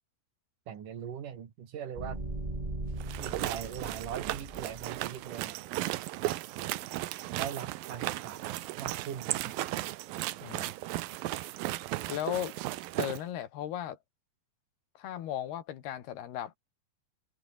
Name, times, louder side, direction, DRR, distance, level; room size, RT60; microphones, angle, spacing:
voice 1, 0.7-2.2 3.2-5.6 6.2-6.5 7.4-9.5, right 8 dB, 55° right, 3.7 m, -41 dB
sound 1, 1.9-5.1, right 2 dB, 10° right, 2.4 m, -39 dB
sound 2, 3.0-13.2, right 16 dB, 75° right, 2.5 m, -36 dB
voice 2, 10.4-10.7 12.1-12.6 13.0-14.0 15.0-16.6, left 11 dB, 80° left, 3.9 m, -36 dB
omnidirectional pair, 4.6 m